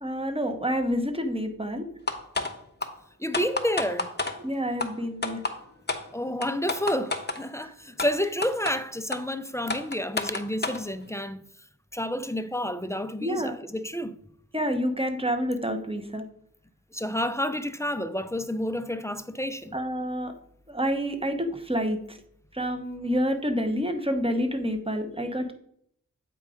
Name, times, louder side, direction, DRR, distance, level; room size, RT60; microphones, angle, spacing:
voice 1, 0.0-1.9 4.4-5.4 7.6-7.7 13.2-13.5 14.5-16.2 19.7-20.3 20.7-22.2 22.5-25.5, equal, 15° right, 0.9 m, -28 dB
sound 1, 2.1-2.5 2.8-2.9 3.3-4.3 4.8-4.9 5.2-5.5 5.9-6.0 6.4-7.4 8.0-8.1 8.4-8.7 9.1-9.2 9.7-10.8, left 3 dB, 30° left, 0.9 m, -29 dB
voice 2, 3.2-4.1 6.1-11.5 11.9-14.2 16.9-19.8, equal, 10° left, 0.4 m, -30 dB
8.1 x 3.8 x 4.9 m
wide cardioid pair, 55°, 34 cm